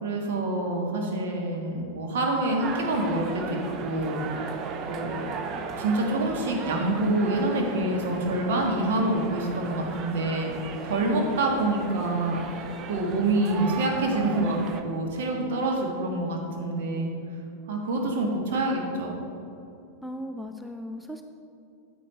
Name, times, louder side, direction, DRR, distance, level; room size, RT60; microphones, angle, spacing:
voice 1, 0.0-4.2 4.8-5.3 5.8-17.1 17.7-19.2, right 2 dB, 55° right, 1 dB, 1.6 m, -27 dB
sound 1, 2.6-14.8, right 5 dB, 35° right, 0.7 m, -36 dB
voice 2, 11.0-11.5 20.0-21.2, left 1 dB, ahead, 4 dB, 0.4 m, -38 dB
8.9 x 8.5 x 4.2 m, 2.6 s
figure-of-eight pair, 90°, 0 cm